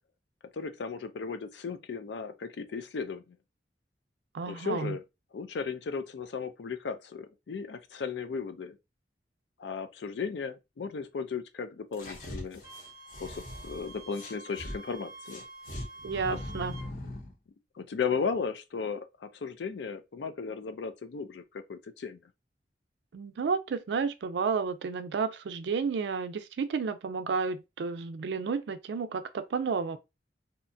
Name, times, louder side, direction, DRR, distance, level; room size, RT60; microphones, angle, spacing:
voice 1, 0.5-3.4 4.5-5.0 5.3-8.8 9.6-12.6 13.2-15.4 16.3-16.4 17.8-22.2, left 5 dB, 75° left, 0.4 m, -35 dB
voice 2, 4.3-5.0 16.0-16.7 23.1-30.0, right 5 dB, 70° right, 0.4 m, -31 dB
sound 1, 11.9-14.8 15.2-17.3, left 1 dB, 50° left, 0.8 m, -41 dB
Wind instrument woodwind instrument, 12.6-16.9, right 2 dB, 20° right, 0.6 m, -48 dB
2.7 x 2.2 x 2.5 m
head